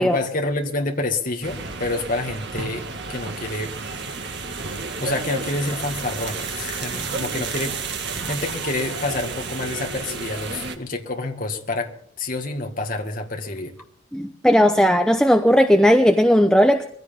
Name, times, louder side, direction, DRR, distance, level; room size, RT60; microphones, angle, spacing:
voice 1, 0.0-2.8 3.1-3.7 5.0-7.7 8.0-13.7, left 2 dB, 40° left, 3 dB, 2.0 m, -28 dB
sound 1, 1.4-10.8, right 4 dB, 55° right, 1.9 m, -31 dB
voice 2, 14.1-16.8, equal, 5° left, 5 dB, 0.7 m, -16 dB
22.5 x 16.0 x 3.6 m, 0.64 s
head